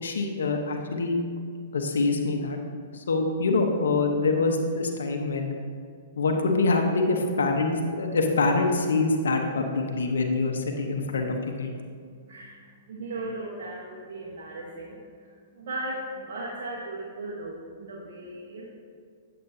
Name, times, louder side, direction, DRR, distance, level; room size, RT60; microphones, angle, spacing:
voice 1, 0.0-1.2 1.7-2.6 2.9-5.5 6.2-11.7, left 3 dB, 80° left, 3 dB, 1.0 m, -25 dB
voice 2, 12.3-15.3 15.5-18.6, right 2 dB, 65° right, -4 dB, 1.2 m, -37 dB
8.5 x 7.9 x 2.8 m, 2.1 s
hypercardioid pair, 125°, 0 cm